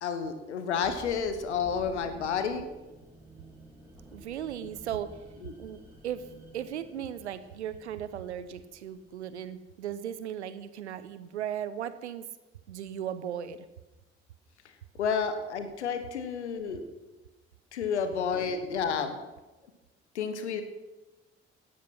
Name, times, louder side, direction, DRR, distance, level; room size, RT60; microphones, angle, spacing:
voice 1, 0.0-2.7 5.4-5.5 15.0-16.8 17.7-19.2 20.1-20.6, left 6 dB, 80° left, 9 dB, 1.5 m, -30 dB
sound 1, 0.8-9.7, right 1 dB, 5° right, 6.9 m, -52 dB
voice 2, 4.1-5.1 5.6-12.3 12.7-13.6, right 9 dB, 80° right, 14 dB, 0.9 m, -37 dB
17.5 x 13.5 x 6.0 m, 1.1 s
figure-of-eight pair, 45°, 34 cm